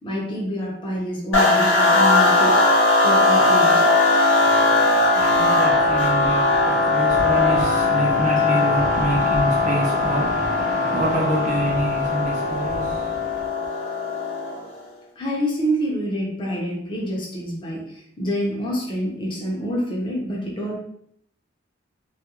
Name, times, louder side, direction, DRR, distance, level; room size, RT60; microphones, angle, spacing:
voice 1, 0.0-2.6 3.0-3.8 15.2-20.8, equal, 25° left, 0.6 m, -27 dB
sound 1, 1.3-14.7, left 2 dB, 85° left, 0.6 m, -19 dB
voice 2, 4.4-13.5, right 1 dB, 40° right, 0.5 m, -26 dB
2.3 x 2.1 x 2.8 m
head